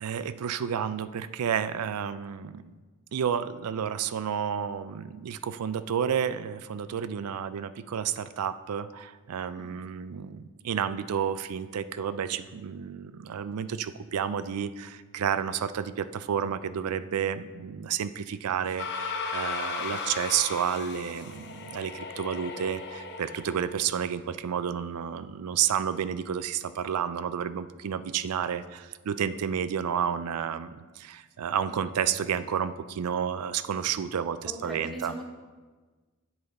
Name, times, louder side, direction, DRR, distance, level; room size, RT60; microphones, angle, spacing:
voice 1, 0.0-2.7 3.1-35.1, right 8 dB, 85° right, 14 dB, 0.4 m, -31 dB
voice 2, 9.4-9.8 34.5-35.2, equal, ahead, -1 dB, 1.1 m, -40 dB
sound 1, 18.8-23.8, left 5 dB, 50° left, 0.7 m, -36 dB
8.2 x 6.5 x 4.0 m, 1.4 s
head